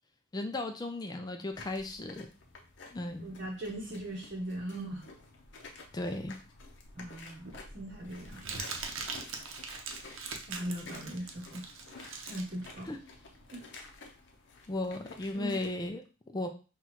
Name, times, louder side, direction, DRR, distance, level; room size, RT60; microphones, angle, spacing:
voice 1, 0.3-2.3 2.9-3.3 5.9-6.4 12.9-13.0 14.7-16.5, left 2 dB, 20° left, 6 dB, 0.3 m, -36 dB
sound 1, 1.5-15.9, left 3 dB, 60° left, 0.7 m, -52 dB
voice 2, 3.2-5.1 6.9-8.6 10.5-11.6 12.0-12.9 13.5-13.6 15.3-15.6, right 1 dB, 45° right, -4 dB, 0.9 m, -40 dB
Crumpling crinkling, 6.8-13.9, right 4 dB, 80° right, 0.7 m, -42 dB
5.9 x 2.4 x 2.9 m, 0.35 s
head